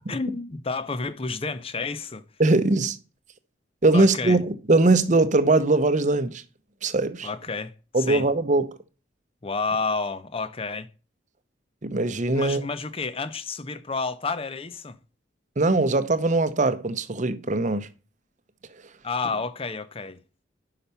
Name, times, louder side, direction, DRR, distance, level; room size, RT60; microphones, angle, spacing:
voice 1, 0.1-2.2 3.9-4.4 7.2-8.3 9.4-10.9 12.3-15.0 19.0-20.2, left 4 dB, 30° left, 0.6 m, -30 dB
voice 2, 2.4-3.0 3.8-6.4 6.8-7.3 7.9-8.7 11.8-12.6 15.6-17.9, right 2 dB, 40° right, 0.7 m, -21 dB
5.8 x 5.4 x 6.7 m
head